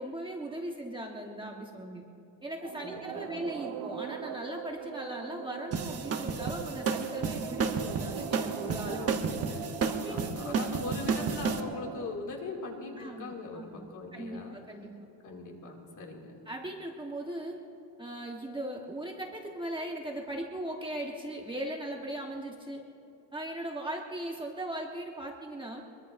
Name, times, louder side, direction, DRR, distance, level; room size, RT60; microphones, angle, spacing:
voice 1, 0.0-2.0 2.4-9.0 9.9-10.5 13.0-13.8 14.1-14.9 16.5-17.6 18.0-22.8 23.3-25.8, right 1 dB, 10° right, -1 dB, 1.1 m, -38 dB
sound 1, 2.6-12.1, right 7 dB, 60° right, 0.9 m, -41 dB
voice 2, 3.3-3.7 8.9-14.6 15.2-16.4, left 3 dB, 40° left, 0 dB, 2.5 m, -41 dB
sound 2, 5.7-11.6, right 5 dB, 30° right, 0.9 m, -31 dB
23.5 x 23.0 x 2.6 m, 2.9 s
cardioid pair, 165°, 45 cm